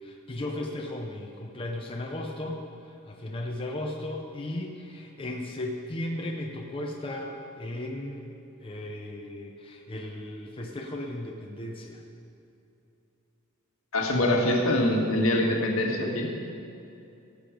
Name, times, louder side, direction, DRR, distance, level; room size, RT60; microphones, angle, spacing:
voice 1, 0.0-12.0, left 1 dB, 25° left, 0 dB, 0.9 m, -36 dB
voice 2, 13.9-16.3, left 1 dB, 70° left, 1 dB, 1.8 m, -24 dB
16.5 x 7.9 x 5.1 m, 2.7 s
head